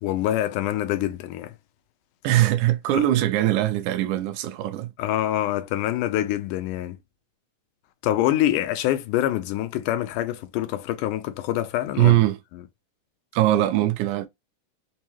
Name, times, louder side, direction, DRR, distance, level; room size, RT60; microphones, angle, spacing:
voice 1, 0.0-1.5 5.0-7.0 8.0-12.2 12.5-12.6, left 13 dB, 80° left, 2.0 m, -25 dB
voice 2, 2.2-4.9 12.0-12.4 13.3-14.3, right 14 dB, 80° right, 1.9 m, -21 dB
5.4 x 2.0 x 2.9 m
omnidirectional pair, 3.8 m